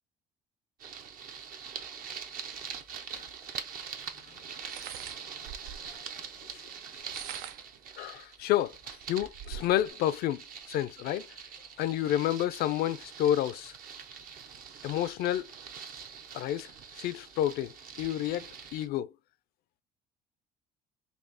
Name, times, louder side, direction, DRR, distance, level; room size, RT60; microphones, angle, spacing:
sound 1, 0.8-18.9, right 7 dB, 60° right, 0.8 m, -44 dB
sound 2, 3.3-3.4 4.6-6.0 6.9-7.8 8.4-8.5 8.8-9.9, right 10 dB, 85° right, 0.4 m, -44 dB
voice 1, 8.0-11.3 11.8-13.7 14.8-15.4 16.3-16.7 17.0-19.1, left 12 dB, 70° left, 0.4 m, -30 dB
4.2 x 2.7 x 2.6 m
cardioid pair, 90°, 16 cm